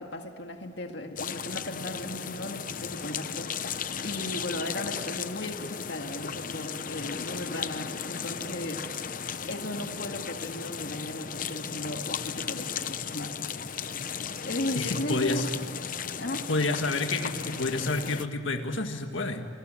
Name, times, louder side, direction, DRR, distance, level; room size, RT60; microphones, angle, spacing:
voice 1, 0.0-8.9 9.5-13.4 13.7-15.5 16.2-16.5, left 1 dB, 60° left, 4 dB, 1.9 m, -36 dB
sound 1, 1.2-18.3, left 7 dB, 45° left, 0.8 m, -35 dB
voice 2, 14.7-15.5 16.5-19.5, left 2 dB, 80° left, 5 dB, 1.8 m, -29 dB
28.5 x 21.5 x 9.1 m, 2.3 s
head